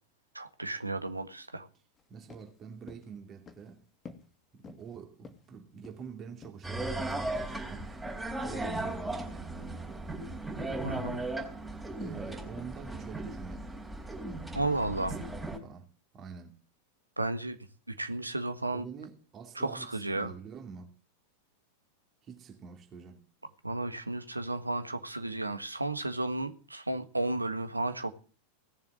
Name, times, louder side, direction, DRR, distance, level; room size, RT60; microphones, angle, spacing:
voice 1, 0.3-1.7 10.8-11.2 14.5-15.2 17.2-17.6 17.9-18.8 19.5-20.3 23.6-28.1, right 2 dB, 85° right, 1.5 m, -33 dB
sound 1, 1.9-2.0 2.3-2.5 2.9-3.1 3.5-3.7 4.0-4.3 4.6-4.9 5.2-6.1 6.4-7.2 7.5-7.7 8.1-8.3 8.6-8.8 9.2-9.4 9.7-9.9 10.2-10.5 10.9-11.1 11.4-11.7 12.0-12.2 12.6-12.8 13.1-13.3, left 5 dB, 20° left, 2.2 m, -51 dB
voice 2, 2.1-3.8 4.5-7.9 8.4-10.1 12.0-13.7 14.9-15.9 16.1-16.6 18.7-20.9 22.2-23.2, right 6 dB, 30° right, 2.6 m, -46 dB
sound 2, 6.6-15.6, right 2 dB, 5° right, 3.8 m, -37 dB
18.0 x 7.3 x 9.1 m
figure-of-eight pair, 90°, 0 cm